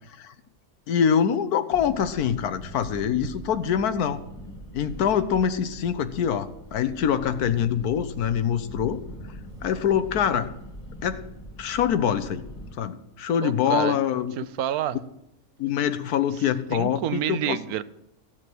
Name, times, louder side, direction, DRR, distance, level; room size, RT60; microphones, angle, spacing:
voice 1, 0.9-4.2 4.7-9.0 9.6-10.5 11.0-11.2 11.6-12.5 12.8-14.3 15.6-17.6, left 8 dB, 90° left, 12 dB, 1.4 m, -24 dB
sound 1, 1.7-12.7, equal, 20° left, 2.2 m, -42 dB
voice 2, 13.4-14.0 14.4-15.0 16.7-17.8, right 11 dB, 80° right, 16 dB, 1.1 m, -28 dB
15.5 x 7.7 x 6.1 m, 0.84 s
omnidirectional pair, 1.6 m